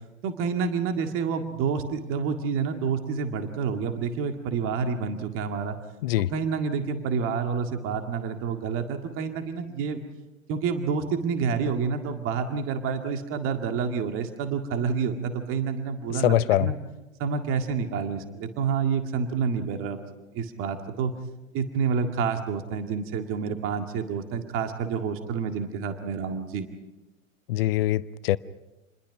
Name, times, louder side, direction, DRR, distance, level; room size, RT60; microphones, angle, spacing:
voice 1, 0.2-5.8 6.2-10.0 10.5-16.8 17.2-20.0 20.3-21.1 21.5-26.7, right 6 dB, 30° right, 6 dB, 2.0 m, -28 dB
voice 2, 16.2-16.7 27.5-28.4, left 14 dB, 45° left, 17 dB, 0.7 m, -23 dB
28.5 x 21.5 x 5.9 m, 1.0 s
figure-of-eight pair, 100°, 40 cm